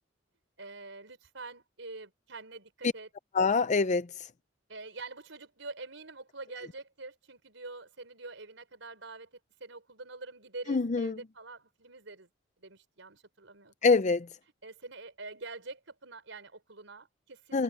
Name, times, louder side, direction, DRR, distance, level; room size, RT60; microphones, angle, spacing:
voice 1, 0.6-3.1 4.7-12.3 12.6-13.7 14.6-17.6, right 3 dB, 85° right, 4.6 m, -46 dB
voice 2, 3.3-4.3 10.7-11.2 13.8-14.3 17.5-17.6, left 4 dB, 40° left, 0.5 m, -25 dB
head